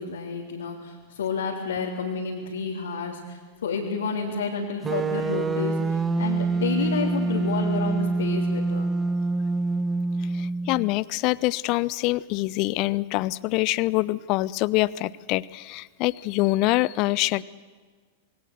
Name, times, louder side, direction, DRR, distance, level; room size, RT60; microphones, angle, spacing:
voice 1, 0.0-8.9, left 5 dB, 70° left, -2 dB, 3.4 m, -30 dB
sound 1, 4.8-10.9, right 3 dB, 15° right, 1.1 m, -26 dB
voice 2, 10.3-17.4, left 19 dB, 45° left, 21 dB, 0.7 m, -25 dB
27.5 x 21.5 x 8.0 m, 1.5 s
figure-of-eight pair, 95°, 0 cm